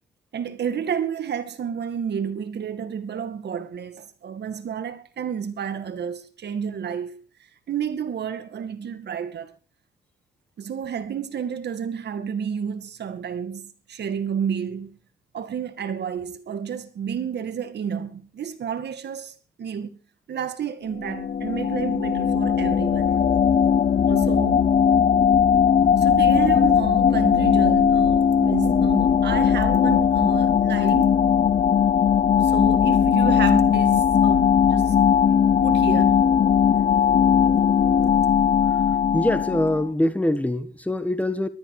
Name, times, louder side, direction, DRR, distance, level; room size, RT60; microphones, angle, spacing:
voice 1, 0.3-9.6 10.6-15.0 15.3-20.0 20.3-23.2 24.1-24.8 26.0-31.2 32.3-35.0 35.6-36.3, right 7 dB, 60° right, 2.2 m, -30 dB
sound 1, 21.0-39.9, left 7 dB, 40° left, 0.8 m, -19 dB
voice 2, 39.1-41.5, left 1 dB, 5° left, 1.5 m, -24 dB
19.0 x 13.0 x 4.9 m
cardioid pair, 90°, 20 cm